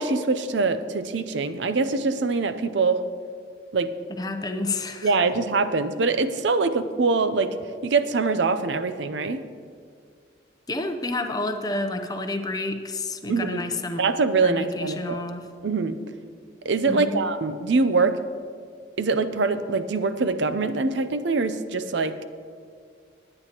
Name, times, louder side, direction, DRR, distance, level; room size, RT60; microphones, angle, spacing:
voice 1, 0.0-3.0 3.7-3.9 5.0-7.5 7.8-9.4 13.3-13.6 14.0-15.2 15.6-16.0 16.6-18.2 19.0-22.2, right 4 dB, 80° right, 11 dB, 0.6 m, -23 dB
voice 2, 4.2-5.2 10.7-14.0 14.4-15.5 16.8-17.3, left 2 dB, 20° left, 6 dB, 0.6 m, -30 dB
19.5 x 8.9 x 2.9 m, 2.1 s
head